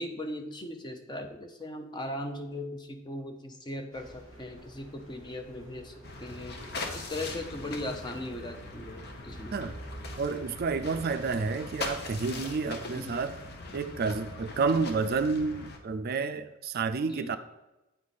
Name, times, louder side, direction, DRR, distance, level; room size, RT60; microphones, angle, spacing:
voice 1, 0.0-5.9 6.2-6.6 6.9-9.6 13.0-13.2 17.1-17.4, left 1 dB, 20° left, 0.7 m, -38 dB
sound 1, 3.9-11.4, right 1 dB, 85° left, 2.1 m, -49 dB
sound 2, 6.0-15.8, left 2 dB, 55° left, 0.9 m, -41 dB
voice 2, 10.2-13.4 13.7-17.4, right 4 dB, 50° right, 0.4 m, -30 dB
8.8 x 4.9 x 4.1 m
head